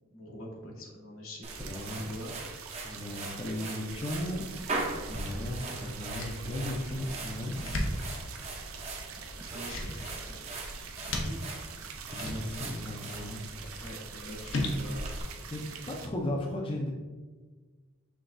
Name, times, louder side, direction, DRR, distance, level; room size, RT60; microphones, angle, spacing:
voice 1, 0.1-2.4 7.4-7.8 9.4-10.4 11.0-11.6 13.8-15.0, equal, 85° left, -2 dB, 1.3 m, -45 dB
sound 1, 1.4-15.2, right 2 dB, 30° right, 0.6 m, -41 dB
sound 2, 1.5-16.1, right 7 dB, 90° right, 0.5 m, -45 dB
voice 2, 1.7-2.1 2.8-4.5 5.1-7.6 12.1-13.9 15.5-16.9, left 1 dB, 25° left, 0 dB, 0.5 m, -36 dB
sound 3, 5.1-16.4, left 1 dB, 65° left, 0.7 m, -39 dB
5.9 x 3.5 x 2.6 m, 1.3 s
head